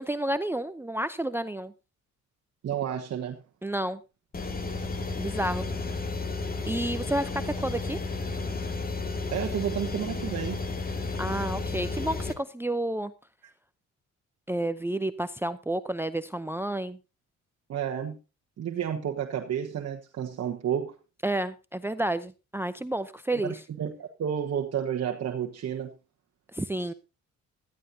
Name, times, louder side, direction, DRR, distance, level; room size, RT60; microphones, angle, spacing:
voice 1, 0.0-1.7 3.6-4.0 5.2-5.7 6.7-8.0 11.2-13.1 14.5-17.0 21.2-23.6 26.5-26.9, right 1 dB, 10° right, 0.6 m, -30 dB
voice 2, 2.6-3.4 9.3-10.6 17.7-18.2 18.6-20.9 23.3-25.9, right 9 dB, 55° right, 1.4 m, -31 dB
sound 1, 4.3-12.3, left 3 dB, 30° left, 2.1 m, -32 dB
16.5 x 13.5 x 2.8 m
cardioid pair, 90°, 30 cm